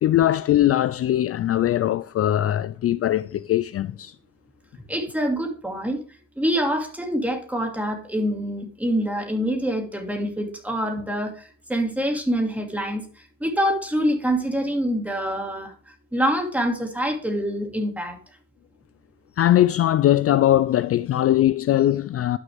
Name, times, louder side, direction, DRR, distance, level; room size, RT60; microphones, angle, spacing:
voice 1, 0.0-4.1 19.4-22.4, left 13 dB, 50° left, 0.4 m, -20 dB
voice 2, 4.9-6.0 6.4-11.3 11.7-13.0 13.4-15.7 16.1-18.2, equal, 5° right, 2.5 m, -25 dB
11.5 x 6.5 x 3.6 m
cardioid pair, 90°, 30 cm